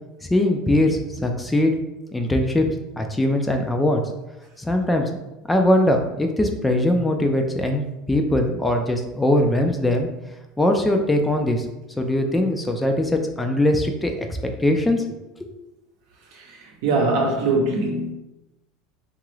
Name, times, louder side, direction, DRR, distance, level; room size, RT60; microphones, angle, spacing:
voice 1, 0.2-1.7 2.1-2.7 3.0-4.0 4.6-5.2 5.5-10.1 10.6-11.6 12.0-14.3 14.6-15.0 15.4-15.6, left 1 dB, 10° left, 4 dB, 0.4 m, -21 dB
voice 2, 16.3-18.1, right 2 dB, 70° right, 0 dB, 0.7 m, -22 dB
2.8 x 2.4 x 3.1 m, 0.98 s
supercardioid pair, 125°, 0 cm